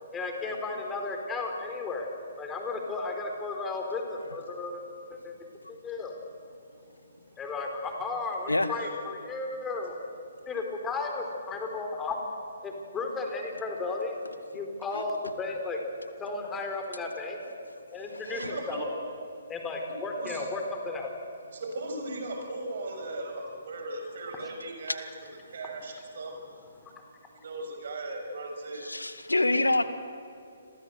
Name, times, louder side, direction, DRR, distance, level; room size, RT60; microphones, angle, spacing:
voice 1, 0.1-2.1 2.4-4.8 5.1-5.3 5.7-6.1 7.4-9.9 10.5-12.2 12.6-14.1 14.5-15.8 16.2-17.4 17.9-18.9 19.5-21.1 26.8-26.9, left 3 dB, 15° left, 3 dB, 4.2 m, -34 dB
voice 2, 8.5-8.8 14.5-14.6 14.9-15.0 18.1-18.5 28.7-29.8, left 2 dB, 85° left, 10 dB, 2.0 m, -27 dB
voice 3, 18.1-19.0 20.2-20.5 21.5-25.0 25.5-26.3 27.4-28.8, right 2 dB, 55° right, 3 dB, 7.2 m, -37 dB
29.0 x 22.5 x 8.1 m, 2.5 s
figure-of-eight pair, 135°, 0 cm